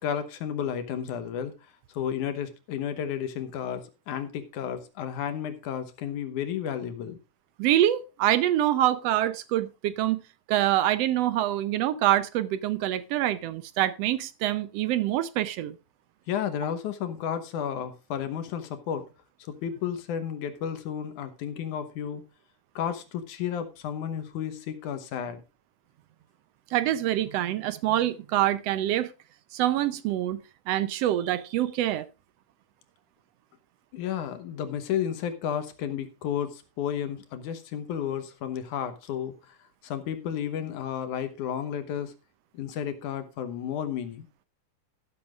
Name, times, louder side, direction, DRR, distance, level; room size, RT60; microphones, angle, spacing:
voice 1, 0.0-7.2 16.3-19.1 19.4-22.2 22.8-25.4 33.9-39.6 39.8-42.1 42.5-44.3, left 9 dB, 75° left, 2.5 m, -32 dB
voice 2, 7.6-10.2 10.5-15.8 26.7-29.1 29.5-30.4 30.7-32.1, right 13 dB, 75° right, 1.5 m, -25 dB
12.5 x 12.5 x 2.4 m
omnidirectional pair, 3.6 m